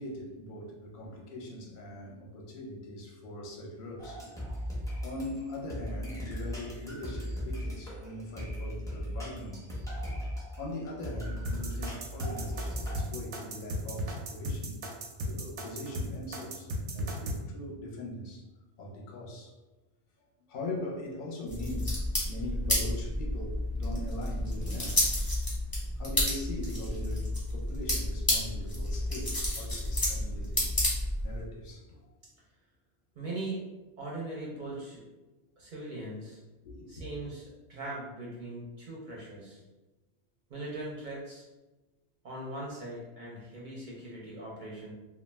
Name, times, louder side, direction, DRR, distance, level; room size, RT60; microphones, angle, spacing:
voice 1, 0.0-4.2 5.0-9.7 10.6-14.7 15.2-18.4 18.8-19.5 20.5-25.0 26.0-30.7 31.2-32.0 36.6-37.1, left 1 dB, 55° left, -1 dB, 0.7 m, -41 dB
sound 1, 4.0-13.0, equal, 5° left, 0.5 m, -38 dB
sound 2, 11.5-17.4, equal, 85° right, 0.9 m, -35 dB
sound 3, 21.5-31.4, left 1 dB, 20° left, 0.8 m, -31 dB
voice 2, 33.2-33.6 34.0-35.1 35.6-36.4 36.9-39.6 40.5-41.5 42.2-44.9, right 2 dB, 55° right, -4 dB, 0.6 m, -40 dB
2.3 x 2.2 x 3.2 m, 1.1 s
omnidirectional pair, 1.2 m